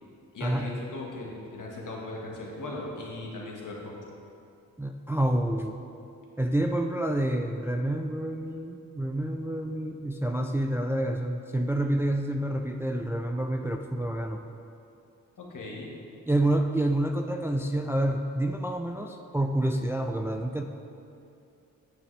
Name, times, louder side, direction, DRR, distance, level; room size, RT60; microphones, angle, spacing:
voice 1, 0.3-4.0 15.4-15.9, left 2 dB, 60° left, -2 dB, 1.7 m, -38 dB
voice 2, 4.8-5.8 6.4-14.4 16.3-20.6, right 1 dB, 5° right, 4 dB, 0.4 m, -28 dB
8.8 x 7.1 x 3.3 m, 2.6 s
supercardioid pair, 45°, 35 cm